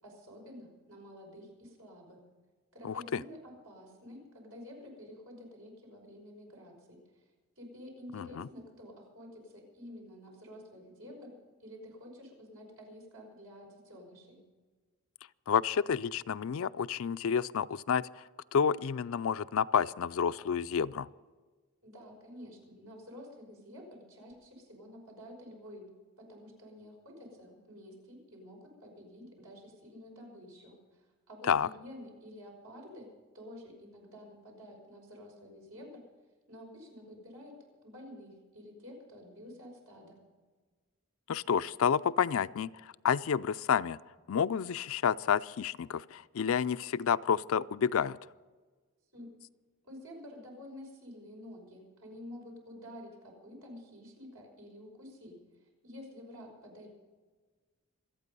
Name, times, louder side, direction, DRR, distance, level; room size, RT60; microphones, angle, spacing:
voice 1, 0.0-2.2 2.7-7.2 7.6-11.3 11.6-14.4 21.8-25.9 26.2-36.0 36.5-37.5 37.8-40.2 49.1-49.3 49.8-56.9, left 1 dB, 75° right, 0 dB, 5.7 m, -50 dB
voice 2, 2.8-3.2 8.1-8.5 15.5-18.2 18.5-21.1 31.5-31.7 41.3-44.0 44.3-48.2, left 7 dB, 65° left, 16 dB, 0.4 m, -30 dB
26.0 x 9.1 x 5.4 m, 1.4 s
head